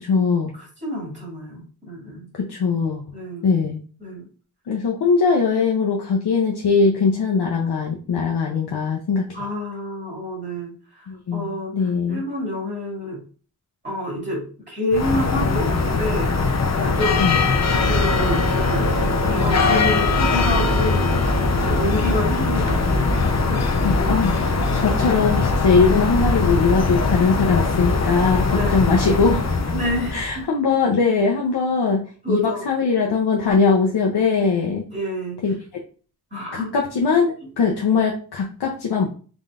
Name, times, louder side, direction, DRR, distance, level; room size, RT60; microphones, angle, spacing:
voice 1, 0.0-0.5 2.3-3.0 3.4-3.8 4.7-9.5 11.1-12.2 17.2-17.4 23.8-29.5 30.1-34.9 35.4-35.5 36.5-39.1, left 5 dB, 85° left, 0 dB, 0.7 m, -21 dB
voice 2, 0.5-2.3 3.1-3.5 4.0-4.2 9.3-13.2 13.8-17.2 17.8-18.9 19.3-21.3 21.6-23.6 24.7-24.8 28.5-29.0 29.7-30.4 32.2-32.7 34.9-35.4 36.3-36.7, left 1 dB, 30° right, -4 dB, 2.1 m, -28 dB
sound 1, 14.9-30.4, left 3 dB, 45° left, 0.6 m, -21 dB
3.9 x 3.7 x 2.4 m, 0.40 s
wide cardioid pair, 75°, 39 cm